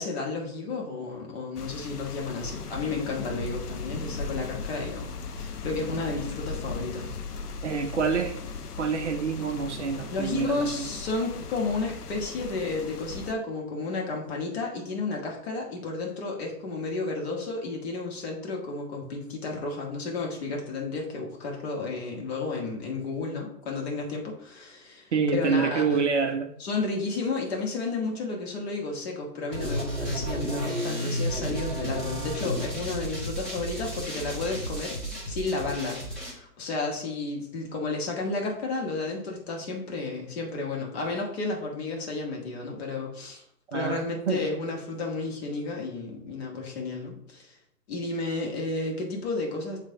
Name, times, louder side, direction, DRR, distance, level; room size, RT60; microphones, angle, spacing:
voice 1, 0.0-5.1 5.4-7.2 10.1-26.0 26.6-43.4 43.7-47.6 47.9-49.9, left 3 dB, 40° left, -1 dB, 1.7 m, -32 dB
sound 1, 1.6-13.3, left 4 dB, 70° left, 0.9 m, -37 dB
voice 2, 7.6-8.4 8.8-10.9 19.0-19.1 25.1-26.5 43.7-44.0 44.3-44.4, right 5 dB, 50° right, 5 dB, 0.6 m, -27 dB
sound 2, 29.5-36.3, right 1 dB, ahead, 1.4 m, -32 dB
8.2 x 3.2 x 3.8 m, 0.70 s
hypercardioid pair, 140°, 48 cm